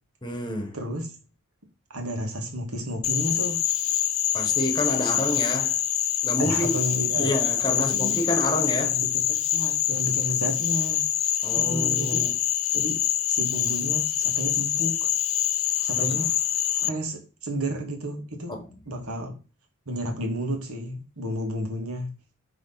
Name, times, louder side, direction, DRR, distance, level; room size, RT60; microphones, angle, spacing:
voice 1, 0.2-0.8 4.3-5.8 6.2-6.8 7.1-9.0 11.4-12.3 15.9-16.1 18.5-18.6, left 1 dB, 20° left, 1.2 m, -28 dB
voice 2, 0.7-1.2 1.9-3.6 6.4-7.3 7.8-8.2 8.5-11.0 11.5-12.3 12.7-15.1 15.8-16.3 16.7-19.4 19.9-22.1, equal, 85° right, 2.1 m, -32 dB
Frog, 3.0-16.9, left 11 dB, 65° left, 0.7 m, -25 dB
10.0 x 3.6 x 4.0 m
head